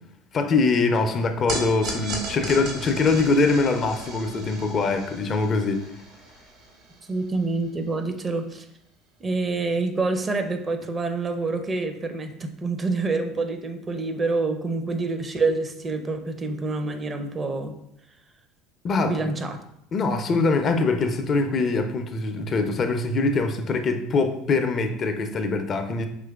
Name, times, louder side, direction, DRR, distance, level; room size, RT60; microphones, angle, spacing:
voice 1, 0.3-6.0 18.8-19.3 19.9-26.1, left 3 dB, 40° left, 7 dB, 0.4 m, -23 dB
sound 1, 1.5-7.9, right 2 dB, 60° right, 0.9 m, -36 dB
voice 2, 7.1-8.7 9.2-17.7 19.1-19.6, right 3 dB, 30° right, 7 dB, 0.5 m, -27 dB
3.7 x 3.0 x 2.3 m, 0.79 s
hypercardioid pair, 75°, 0 cm